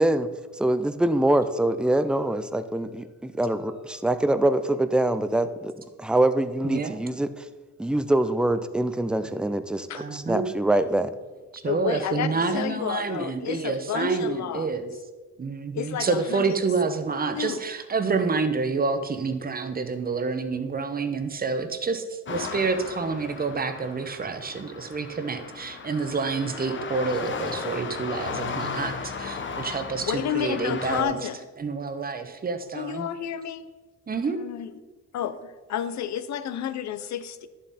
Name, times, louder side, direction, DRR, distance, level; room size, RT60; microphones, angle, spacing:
voice 1, 0.0-5.7 6.0-7.5 7.8-11.1, right 1 dB, 5° right, 0.5 m, -24 dB
voice 2, 6.6-7.0 10.0-10.5 11.5-14.9 15.4-31.1 31.6-33.1 34.1-34.4, right 4 dB, 30° right, 1.1 m, -28 dB
voice 3, 11.6-14.7 15.7-16.6 17.3-17.6 30.0-31.4 32.7-33.7 34.2-34.7 35.1-37.5, left 9 dB, 65° left, 0.8 m, -31 dB
sound 1, 22.3-31.0, left 5 dB, 40° left, 1.0 m, -35 dB
11.0 x 7.5 x 4.2 m
cardioid pair, 90°, 30 cm